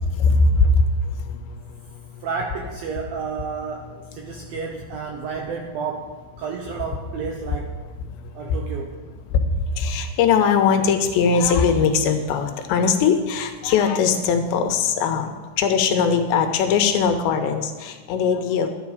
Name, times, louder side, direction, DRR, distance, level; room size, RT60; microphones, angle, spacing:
voice 1, 0.0-2.2 4.3-4.5 8.0-8.6 9.3-18.7, left 5 dB, 80° left, 6 dB, 3.0 m, -21 dB
voice 2, 2.2-7.8 8.4-9.0, right 5 dB, 80° right, 2 dB, 2.1 m, -31 dB
12.0 x 10.0 x 4.9 m, 1.4 s
omnidirectional pair, 5.2 m